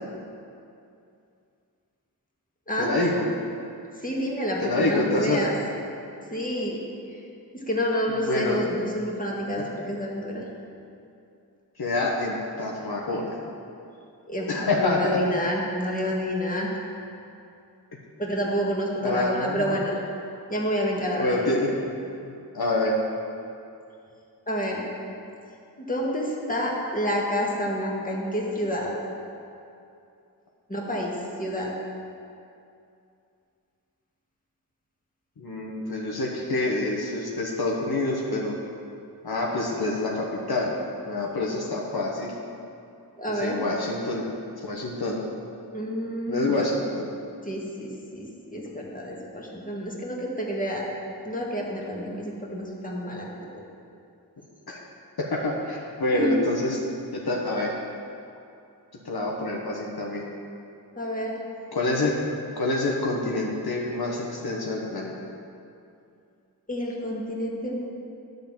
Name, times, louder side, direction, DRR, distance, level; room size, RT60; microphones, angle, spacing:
voice 1, 2.8-3.2 4.6-5.4 8.2-8.6 9.6-9.7 11.8-13.4 14.5-15.2 19.0-19.7 21.2-21.8 22.2-22.9 35.4-38.6 39.2-40.7 41.1-42.3 43.3-44.2 44.6-45.2 46.3-47.1 54.7-54.8 55.2-56.8 57.1-57.7 59.0-60.3 61.7-62.1 62.6-65.1, left 2 dB, 70° left, -2 dB, 1.2 m, -27 dB
voice 2, 4.0-5.5 6.3-6.8 7.5-10.4 14.3-16.7 18.2-19.9 20.5-21.5 24.5-24.9 25.8-28.9 30.7-31.7 43.2-43.6 45.7-46.6 47.4-50.8 51.2-53.6 56.1-56.3 61.0-61.3 66.7-67.8, equal, 20° left, -3 dB, 1.9 m, -29 dB
11.0 x 4.0 x 7.3 m, 2.6 s
cardioid pair, 45°, 39 cm